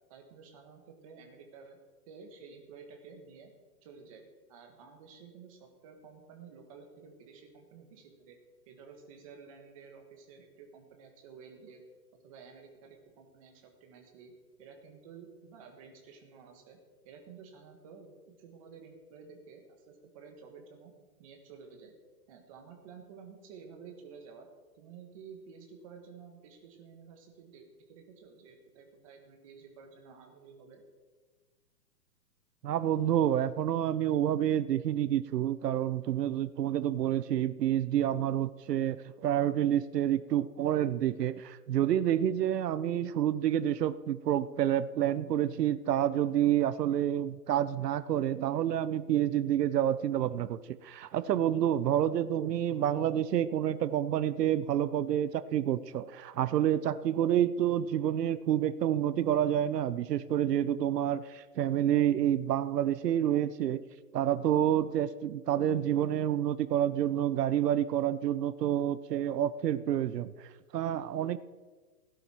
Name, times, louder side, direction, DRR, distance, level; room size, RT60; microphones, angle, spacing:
voice 1, 0.1-1.8 2.1-3.5 3.8-4.2 4.5-8.4 8.6-11.8 12.2-14.3 14.6-16.8 17.0-20.9 21.2-21.9 22.3-24.5 24.7-30.8, right 5 dB, 20° right, 3 dB, 1.5 m, -52 dB
voice 2, 32.6-63.8 64.1-71.4, right 11 dB, 80° right, 15 dB, 0.8 m, -28 dB
16.5 x 11.5 x 4.5 m, 1.4 s
hypercardioid pair, 175°, 47 cm